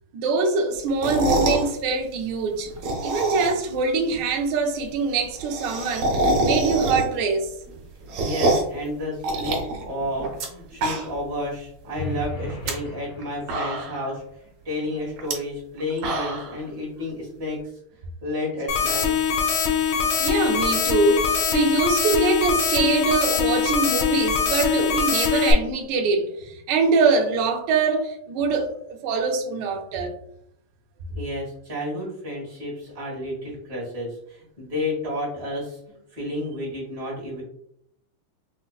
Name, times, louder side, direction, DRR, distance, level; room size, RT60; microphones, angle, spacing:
voice 1, 0.1-2.7 3.0-7.5 20.2-30.1, right 4 dB, 75° right, 3 dB, 1.0 m, -23 dB
sound 1, 0.9-1.7 2.7-3.8 4.1-4.2 4.4-4.5 4.7-4.8 5.1-7.3 7.7-8.8 9.2-10.5 10.7-11.3 11.7-11.8 12.4-12.7 13.2-13.3 13.5-14.1 15.2-15.3 15.8-16.6, right 1 dB, 90° right, 1.7 m, -25 dB
voice 2, 8.2-9.6 9.8-14.2 14.7-17.7 18.2-19.1 31.1-35.8 36.1-37.4, left 1 dB, 50° right, -4 dB, 1.8 m, -31 dB
sound 2, 12.0-14.0, left 1 dB, 90° left, 1.8 m, -35 dB
sound 3, 18.7-25.5, left 6 dB, 75° left, 1.0 m, -22 dB
5.1 x 2.1 x 2.3 m, 0.72 s
omnidirectional pair, 2.4 m